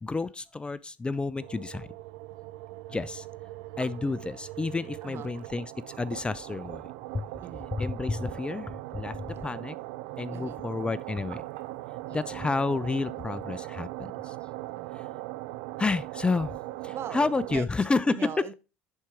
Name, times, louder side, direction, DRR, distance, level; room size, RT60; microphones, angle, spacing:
voice 1, 0.0-1.9 2.9-3.2 3.8-6.8 7.1-7.2 7.8-9.8 10.2-11.4 12.1-14.3 14.9-15.1 15.8-16.6 16.8-18.4, left 3 dB, 15° left, 0.4 m, -30 dB
sound 1, 1.4-17.6, right 18 dB, 70° right, 0.4 m, -40 dB
voice 2, 5.0-5.3 7.4-7.8 9.3-9.6 10.3-10.6 12.0-12.6 14.7-15.2 16.9-17.7 18.0-18.5, right 9 dB, 45° right, 0.8 m, -42 dB
10.5 x 4.3 x 3.5 m
hypercardioid pair, 70°, 6 cm